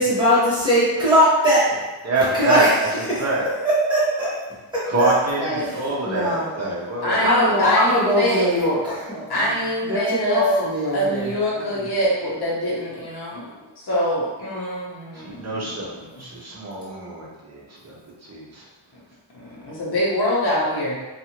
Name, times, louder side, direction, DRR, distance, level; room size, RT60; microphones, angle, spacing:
voice 1, 0.0-1.6 2.2-3.2 3.6-4.3 4.7-5.1 5.6-5.7 6.0-6.5 7.2-9.4 9.8-11.3 11.7-11.8, equal, 10° right, -10 dB, 1.1 m, -20 dB
voice 2, 2.0-2.7 3.2-3.4 4.9-7.2 15.2-18.0 18.3-18.6, right 2 dB, 35° right, -5 dB, 0.7 m, -25 dB
voice 3, 5.3-5.8 6.5-6.7 7.0-8.5 9.3-10.7 10.9-13.4 13.8-15.9 16.2-16.3 19.3-21.0, equal, 55° left, -6 dB, 0.9 m, -24 dB
2.6 x 2.4 x 2.8 m, 1.1 s
wide cardioid pair, 165°, 46 cm